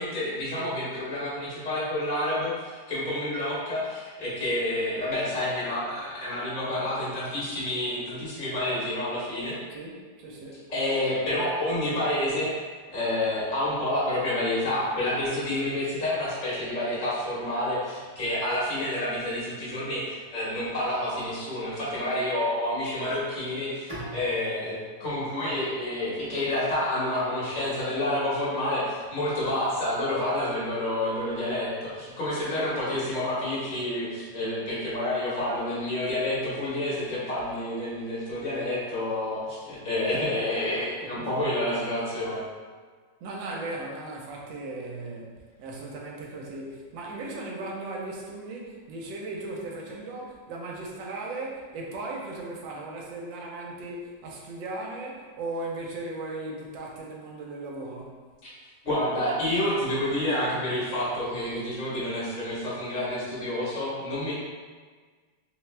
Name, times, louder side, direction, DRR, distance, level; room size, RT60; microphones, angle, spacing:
voice 1, 0.0-9.6 10.7-12.5 12.9-42.4 58.4-58.5 58.8-64.3, left 1 dB, 30° left, -8 dB, 1.0 m, -29 dB
voice 2, 9.7-10.6 32.5-32.7 41.2-41.5 43.2-58.2, right 2 dB, 85° right, -1 dB, 1.4 m, -37 dB
Bowed string instrument, 23.9-26.9, right 1 dB, 30° right, 0.6 m, -44 dB
3.4 x 3.1 x 3.2 m, 1.5 s
omnidirectional pair, 2.0 m